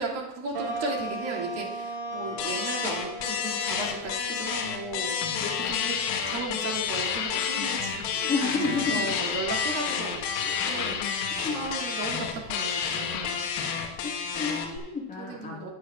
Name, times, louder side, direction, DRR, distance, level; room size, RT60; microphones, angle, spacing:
voice 1, 0.0-5.2 5.5-13.4 15.2-15.7, right 3 dB, 50° right, -3 dB, 2.6 m, -36 dB
sound 1, 0.5-7.2, right 2 dB, 25° right, 2.2 m, -38 dB
sound 2, 2.4-14.8, left 6 dB, 40° left, 1.4 m, -31 dB
sound 3, 5.0-13.9, left 8 dB, 60° left, 1.4 m, -35 dB
voice 2, 5.4-5.9 8.3-9.2 11.3-11.6 14.0-15.7, left 4 dB, 15° left, -3 dB, 1.5 m, -31 dB
14.5 x 9.7 x 2.4 m, 0.98 s
supercardioid pair, 150°, 45 cm